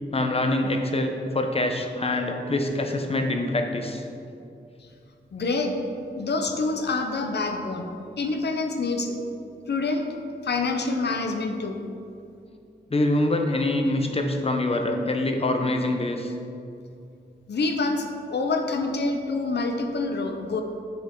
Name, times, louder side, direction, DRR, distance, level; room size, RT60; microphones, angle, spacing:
voice 1, 0.1-4.0 12.9-16.3, left 2 dB, 35° left, 4 dB, 0.8 m, -25 dB
voice 2, 5.3-5.7 6.1-7.9 8.2-9.2 9.7-10.1 10.4-11.8 17.5-20.6, left 3 dB, 70° left, 4 dB, 0.8 m, -26 dB
6.9 x 6.5 x 3.8 m, 2.5 s
wide cardioid pair, 90°, 18 cm